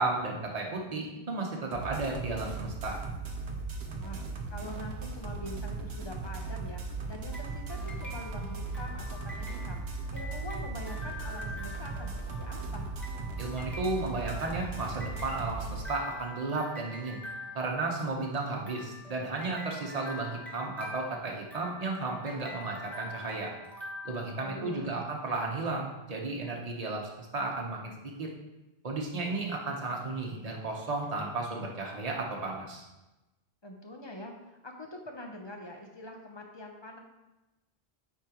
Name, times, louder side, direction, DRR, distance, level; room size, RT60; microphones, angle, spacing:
voice 1, 0.0-3.0 13.4-17.2 17.5-23.5 24.0-27.9 28.2-28.3 28.8-32.8, right 3 dB, 40° right, -1 dB, 1.1 m, -34 dB
sound 1, 1.7-15.8, right 3 dB, 75° right, 1.1 m, -37 dB
voice 2, 4.5-9.8 10.1-12.9 24.4-25.1 33.6-37.0, left 1 dB, 30° left, 2 dB, 0.8 m, -44 dB
sound 2, 7.3-25.0, left 1 dB, ahead, 1.0 m, -46 dB
8.7 x 4.8 x 3.0 m, 1.0 s
omnidirectional pair, 1.1 m